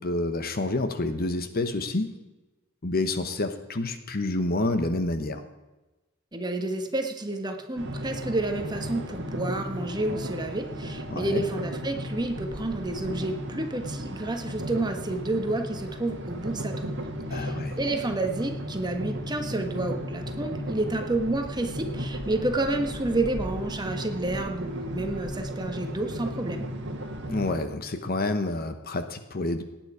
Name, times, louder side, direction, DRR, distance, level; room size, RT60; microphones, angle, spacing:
voice 1, 0.0-2.1 2.8-5.4 11.1-11.4 17.3-17.8 27.3-29.6, left 2 dB, 45° left, 9 dB, 1.0 m, -28 dB
voice 2, 6.3-17.0 17.3-26.7, right 2 dB, 20° right, 5 dB, 1.4 m, -30 dB
sound 1, 7.8-27.6, equal, 60° right, 1.7 m, -35 dB
18.0 x 9.3 x 5.0 m, 1.1 s
head